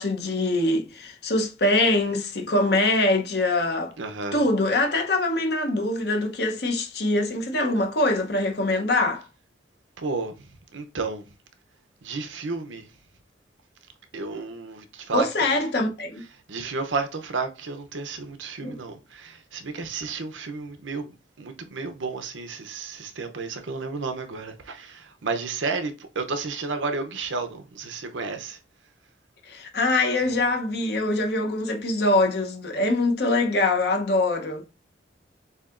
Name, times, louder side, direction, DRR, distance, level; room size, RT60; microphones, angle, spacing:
voice 1, 0.0-3.9 4.3-9.2 15.1-16.2 18.6-18.8 29.5-34.6, left 2 dB, 55° left, 0.9 m, -23 dB
voice 2, 4.0-4.4 10.0-11.2 12.0-12.9 14.1-15.5 16.3-28.6, right 4 dB, 85° right, 0.7 m, -32 dB
6.9 x 2.8 x 2.5 m
head